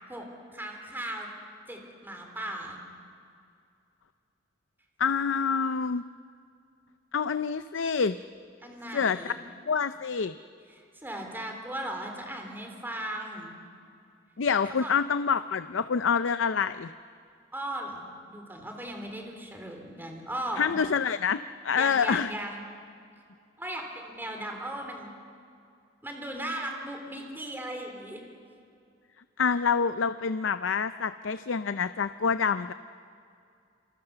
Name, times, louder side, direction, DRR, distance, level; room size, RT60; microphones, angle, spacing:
voice 1, 0.5-1.3 1.7-2.8 8.6-9.4 10.7-13.5 14.7-14.9 17.5-20.8 21.8-22.6 23.6-25.1 26.0-28.2, right 1 dB, 10° right, 2 dB, 3.5 m, -37 dB
voice 2, 5.0-6.0 7.1-8.2 8.9-9.3 9.7-10.3 14.4-16.9 20.6-22.3 29.4-32.7, left 6 dB, 75° left, 12 dB, 0.5 m, -27 dB
28.0 x 27.5 x 6.9 m, 2.4 s
head